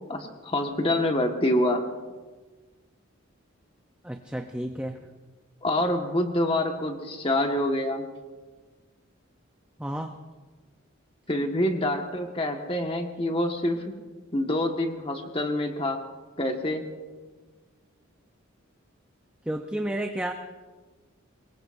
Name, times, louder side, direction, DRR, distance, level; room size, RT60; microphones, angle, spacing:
voice 1, 0.1-1.8 5.6-8.0 11.3-13.9 14.3-16.0 16.4-16.9, left 1 dB, 25° left, 3 dB, 1.5 m, -26 dB
voice 2, 4.0-5.0 9.8-10.1 19.5-20.3, right 1 dB, 5° right, 4 dB, 0.6 m, -31 dB
24.0 x 22.0 x 2.6 m, 1.3 s
head